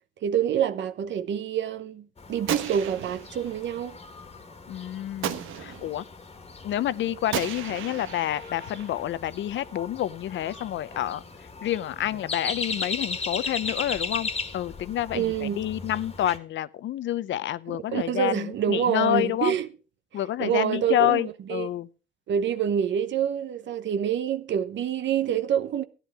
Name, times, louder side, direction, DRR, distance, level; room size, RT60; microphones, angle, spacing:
voice 1, 0.2-4.0 15.1-15.6 17.9-19.7 20.4-21.2 21.5-21.7 22.3-25.8, right 9 dB, 70° right, 1.0 m, -26 dB
sound 1, 2.2-16.4, left 4 dB, 30° left, 1.8 m, -37 dB
Gunshot gunfire, 2.5-3.6 5.2-6.0 7.3-9.0, right 9 dB, 85° right, 1.2 m, -35 dB
voice 2, 4.7-6.0 6.6-11.2 11.6-19.6 20.1-21.9, left 12 dB, 70° left, 0.7 m, -28 dB
13.5 x 9.9 x 4.8 m
cardioid pair, 90°, 20 cm